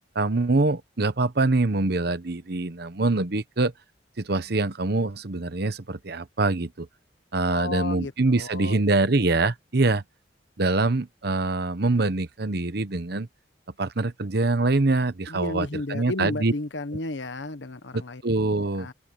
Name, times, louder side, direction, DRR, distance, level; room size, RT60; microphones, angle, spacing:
voice 1, 0.1-3.7 4.2-6.9 7.3-10.0 10.6-13.3 13.8-16.5 17.9-18.9, right 2 dB, 60° right, 1.0 m, -24 dB
voice 2, 7.5-8.1 8.4-8.8 9.1-9.2 15.3-18.2 18.7-18.9, left 2 dB, 75° left, 1.3 m, -33 dB
open air
head